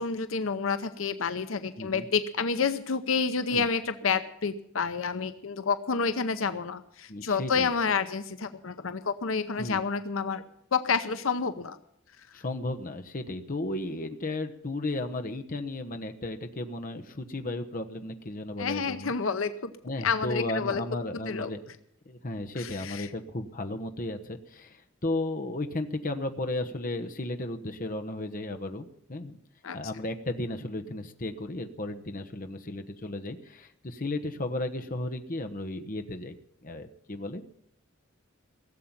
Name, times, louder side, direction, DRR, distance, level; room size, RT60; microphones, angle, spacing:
voice 1, 0.0-10.4 10.7-11.8 18.6-19.7 20.0-20.8 21.3-21.5 22.6-23.1 29.6-29.8, left 5 dB, 85° left, 11 dB, 0.8 m, -29 dB
voice 2, 7.1-7.7 9.6-9.8 12.3-19.1 19.8-21.6 22.0-29.4 29.7-36.4 36.6-37.5, left 2 dB, 45° left, 6 dB, 1.1 m, -34 dB
17.0 x 7.6 x 8.9 m, 0.71 s
head